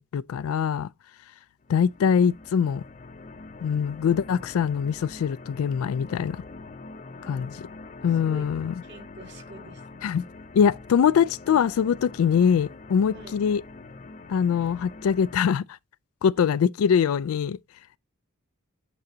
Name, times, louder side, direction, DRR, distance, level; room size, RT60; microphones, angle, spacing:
voice 1, 0.1-0.9 1.7-2.8 3.6-6.4 7.3-7.5 8.0-8.7 10.0-10.3 10.5-13.6 14.3-15.6 16.2-17.6, left 7 dB, 80° left, 0.3 m, -23 dB
sound 1, 1.6-15.4, left 3 dB, 35° left, 0.6 m, -44 dB
voice 2, 7.2-7.5 8.1-8.5 8.8-10.1 13.1-13.4 16.4-16.5, equal, 55° right, 1.8 m, -46 dB
9.2 x 3.9 x 2.7 m
head